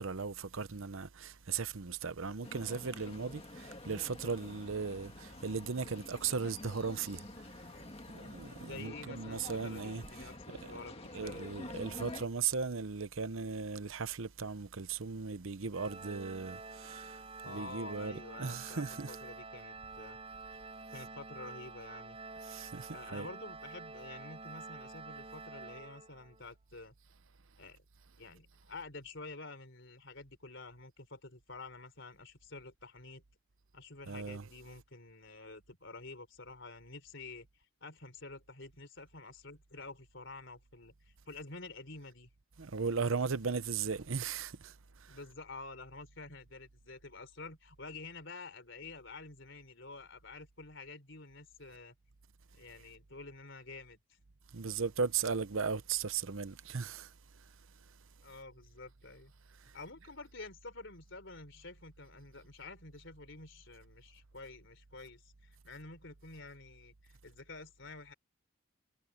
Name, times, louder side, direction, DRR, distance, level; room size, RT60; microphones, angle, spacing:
voice 1, 0.0-7.6 8.1-10.8 11.1-19.2 22.4-23.3 34.1-34.5 42.6-45.2 54.5-57.1, right 5 dB, 75° right, 0.8 m, -37 dB
sound 1, 2.4-12.3, left 2 dB, 30° left, 1.9 m, -48 dB
voice 2, 8.6-11.4 17.4-20.2 20.9-22.2 22.9-26.9 27.6-27.8 28.2-33.2 33.7-37.5 37.8-42.3 45.1-51.9 52.5-54.0 58.2-59.3 59.7-68.1, left 3 dB, 60° left, 4.0 m, -49 dB
Organ, 15.7-26.5, right 4 dB, 25° right, 7.4 m, -48 dB
head